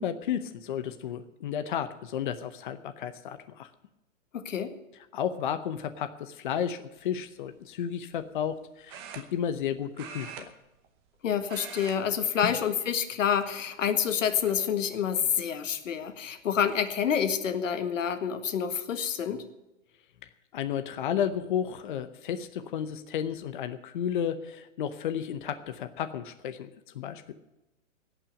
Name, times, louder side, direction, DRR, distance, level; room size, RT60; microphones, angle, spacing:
voice 1, 0.0-3.7 5.1-10.5 12.4-12.5 20.5-26.7 26.9-27.3, left 9 dB, 40° left, 10 dB, 0.8 m, -32 dB
voice 2, 4.3-4.7 11.2-19.4, left 8 dB, 75° left, 9 dB, 1.8 m, -28 dB
sound 1, 7.0-7.2 8.9-9.7 9.9-11.2 11.4-12.0 12.3-12.6 13.3-13.9 14.4-14.5 16.0-16.1 16.4-16.8, right 8 dB, 20° right, 0.9 m, -44 dB
17.5 x 6.0 x 9.7 m, 0.96 s
hypercardioid pair, 170°, 39 cm